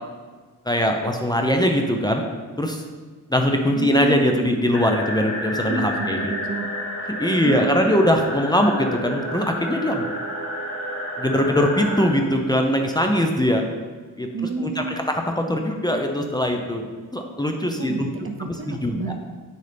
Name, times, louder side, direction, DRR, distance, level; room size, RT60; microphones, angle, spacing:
voice 1, 0.7-2.2 2.6-2.8 3.3-6.3 7.2-10.1 11.2-13.7 14.2-14.3 14.6-16.9 17.1-18.1 18.4-19.1, equal, 10° left, 2 dB, 0.7 m, -21 dB
voice 2, 3.7-4.5 5.7-6.7 7.4-8.1 14.3-15.0 17.8-19.1, right 4 dB, 35° right, 4 dB, 0.8 m, -29 dB
sound 1, 4.7-12.1, equal, 40° left, 1.8 m, -30 dB
9.1 x 6.7 x 3.5 m, 1.4 s
wide cardioid pair, 100°, 35 cm